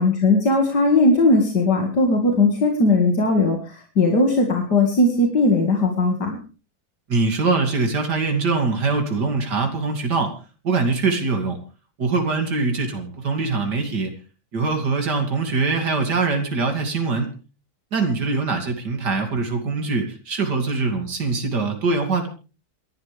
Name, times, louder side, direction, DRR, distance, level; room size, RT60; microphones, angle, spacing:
voice 1, 0.0-6.4, left 2 dB, 80° left, 2 dB, 2.7 m, -18 dB
voice 2, 7.1-10.3 10.6-11.6 12.0-14.1 14.5-17.3 17.9-22.3, right 4 dB, 85° right, 4 dB, 3.2 m, -23 dB
27.5 x 12.0 x 3.4 m, 0.35 s
omnidirectional pair, 1.8 m